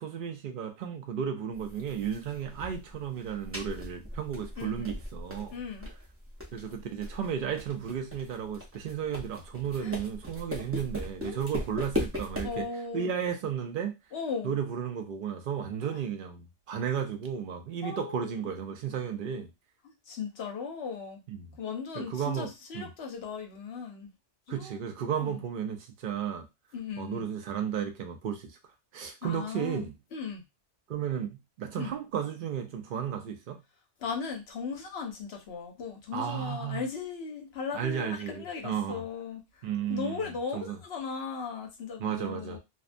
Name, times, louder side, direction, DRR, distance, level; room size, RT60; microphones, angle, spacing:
voice 1, 0.0-5.6 6.5-12.7 12.9-13.9 14.4-19.5 21.3-21.5 21.9-22.9 24.5-26.5 27.0-28.5 28.9-29.9 30.9-33.6 36.1-36.8 37.7-39.0 39.6-40.8 42.0-42.6, right 8 dB, 55° right, 0.7 m, -34 dB
sound 1, 1.5-12.6, left 1 dB, 20° right, 0.3 m, -39 dB
voice 2, 4.6-4.9 5.5-5.9 9.8-9.9 11.2-11.5 12.4-13.1 14.1-14.5 15.8-16.0 17.8-18.4 19.8-21.2 21.6-24.1 24.5-24.8 25.2-25.4 26.7-27.2 29.2-30.4 31.8-31.9 34.0-39.6 39.9-42.6, left 5 dB, 60° left, 0.8 m, -37 dB
2.6 x 2.2 x 2.5 m
omnidirectional pair, 1.3 m